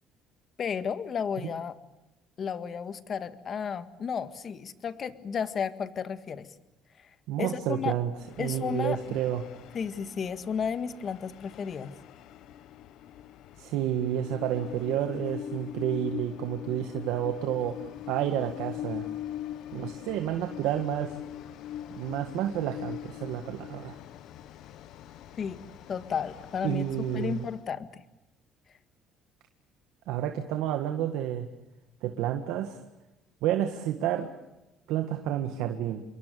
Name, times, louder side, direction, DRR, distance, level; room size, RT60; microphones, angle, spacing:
voice 1, 0.6-1.7 2.4-6.5 7.0-7.1 7.4-8.0 8.4-9.0 9.7-11.9 25.4-25.6 25.9-26.9 27.1-28.0, left 7 dB, 40° left, 12 dB, 1.7 m, -33 dB
voice 2, 7.3-8.1 8.4-9.4 13.6-17.8 18.1-19.1 19.7-21.1 22.0-24.0 26.6-27.4 30.1-31.5 32.0-32.8 33.4-34.3 34.9-36.0, right 11 dB, 85° right, 6 dB, 1.8 m, -30 dB
Train, 8.2-27.7, left 11 dB, 70° left, 1.2 m, -42 dB
27.0 x 23.0 x 6.9 m, 0.97 s
cardioid pair, 115°, 0 cm